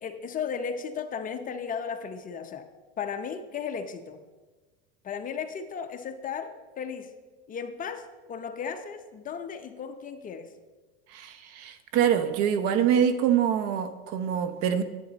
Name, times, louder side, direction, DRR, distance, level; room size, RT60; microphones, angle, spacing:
voice 1, 0.0-2.6 3.0-4.2 5.0-7.1 7.5-10.5, left 6 dB, 25° left, 7 dB, 0.8 m, -35 dB
voice 2, 11.1-14.8, right 9 dB, 55° right, 11 dB, 0.9 m, -25 dB
10.5 x 8.7 x 4.0 m, 1.3 s
supercardioid pair, 120°, 30 cm